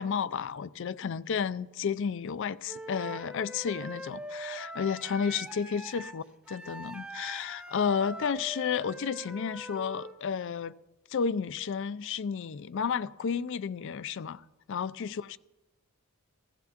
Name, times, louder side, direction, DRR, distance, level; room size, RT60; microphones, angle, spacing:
voice 1, 0.0-10.7 11.1-15.4, left 6 dB, 55° left, 0.4 m, -32 dB
Wind instrument woodwind instrument, 2.7-10.2, right 1 dB, 5° right, 0.8 m, -42 dB
16.0 x 15.5 x 2.9 m
head